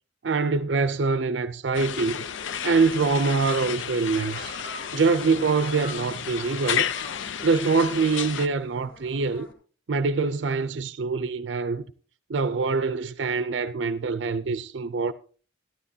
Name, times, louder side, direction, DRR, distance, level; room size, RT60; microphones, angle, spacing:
voice 1, 0.2-2.2 2.6-4.6 4.9-6.9 7.4-9.5 9.9-11.8 12.3-15.1, right 4 dB, 70° right, 0.5 m, -24 dB
sound 1, 1.7-8.5, left 8 dB, 80° left, 0.5 m, -32 dB
sound 2, 2.8-9.5, equal, 50° left, 2.0 m, -45 dB
14.5 x 12.5 x 2.7 m
head